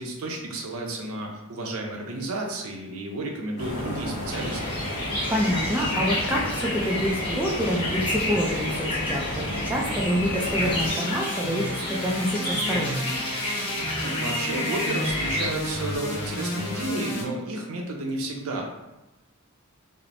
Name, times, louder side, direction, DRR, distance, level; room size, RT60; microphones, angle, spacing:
voice 1, 0.0-4.6 14.0-18.6, right 2 dB, 80° right, 1 dB, 0.5 m, -32 dB
sound 1, 3.6-10.9, equal, 55° left, 1.0 m, -32 dB
sound 2, 4.3-15.5, left 1 dB, 25° left, 0.7 m, -31 dB
voice 2, 5.3-13.2, equal, 5° right, -4 dB, 0.3 m, -27 dB
sound 3, 10.4-17.2, left 1 dB, 85° left, 0.7 m, -32 dB
3.2 x 2.0 x 2.5 m, 1.0 s
head